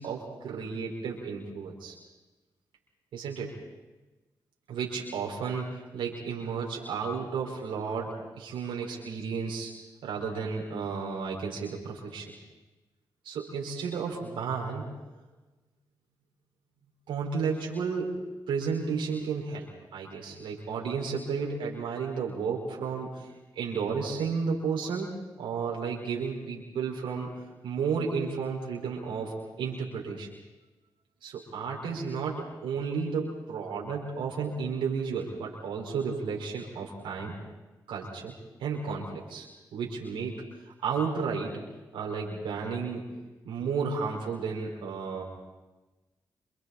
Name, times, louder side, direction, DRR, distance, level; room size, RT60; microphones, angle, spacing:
voice 1, 0.0-1.9 3.1-3.5 4.7-9.7 10.0-12.3 13.2-14.9 17.1-18.2 18.5-23.3 23.5-27.3 27.6-30.3 31.2-37.3 37.9-38.3 38.6-39.5 39.7-41.6 41.9-43.1 43.4-45.2, right 5 dB, 90° right, -2 dB, 4.7 m, -33 dB
28.5 x 27.0 x 4.2 m, 1.1 s
supercardioid pair, 50°, 8 cm